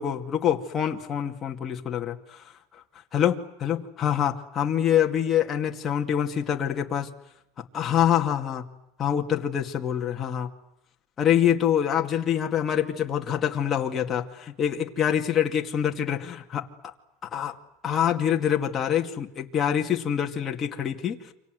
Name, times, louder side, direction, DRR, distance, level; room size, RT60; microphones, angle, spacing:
voice 1, 0.0-2.8 3.1-7.1 7.7-8.7 9.0-10.5 11.2-16.9 17.3-17.6 17.8-21.3, left 9 dB, 25° left, 2 dB, 2.4 m, -25 dB
28.5 x 25.5 x 8.0 m, 0.84 s
supercardioid pair, 145°, 0 cm